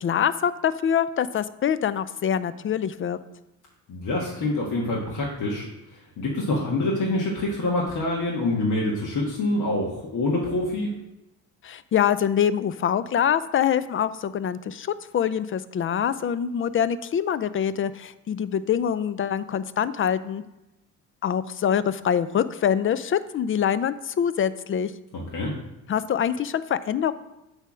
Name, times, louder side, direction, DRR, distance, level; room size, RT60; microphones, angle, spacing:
voice 1, 0.0-3.2 11.6-20.4 21.2-24.9 25.9-27.1, left 8 dB, 35° left, 15 dB, 0.5 m, -25 dB
voice 2, 3.9-10.9 25.1-25.5, left 2 dB, 50° left, -4 dB, 1.7 m, -26 dB
8.1 x 3.5 x 6.2 m, 0.95 s
hypercardioid pair, 60°, 38 cm